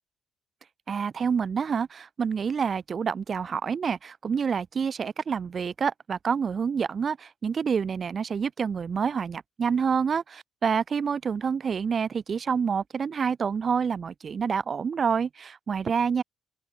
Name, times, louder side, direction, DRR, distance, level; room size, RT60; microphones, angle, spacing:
voice 1, 0.9-16.2, right 6 dB, 45° right, 0.9 m, -27 dB
open air
cardioid pair, 90°, 0 cm